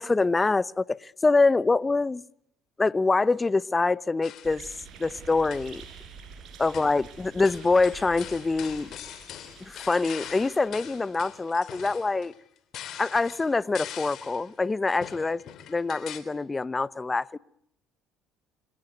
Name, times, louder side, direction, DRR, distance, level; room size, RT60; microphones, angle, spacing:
voice 1, 0.0-2.2 2.8-4.7 5.0-5.8 6.6-8.9 9.6-12.3 13.0-15.4 15.7-17.4, left 3 dB, 20° left, 0.9 m, -25 dB
sound 1, 4.2-4.7 5.4-5.8 6.7-7.1 7.4-14.5 15.0-16.2, left 10 dB, 60° left, 3.3 m, -43 dB
sound 2, 4.4-11.5, right 6 dB, 55° right, 7.4 m, -48 dB
27.5 x 18.5 x 9.3 m
hypercardioid pair, 60°, 0 cm